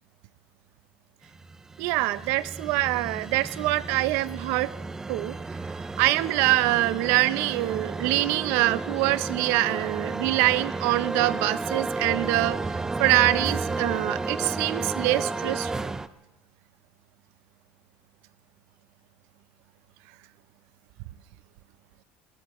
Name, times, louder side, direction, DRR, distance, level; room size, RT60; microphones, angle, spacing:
sound 1, 1.4-16.1, right 3 dB, 15° right, 0.5 m, -32 dB
voice 1, 1.8-4.7 5.1-5.3 6.0-12.6 13.0-15.9, right 18 dB, 75° right, 16 dB, 0.6 m, -24 dB
24.5 x 19.0 x 3.0 m, 0.99 s
cardioid pair, 135°, 4 cm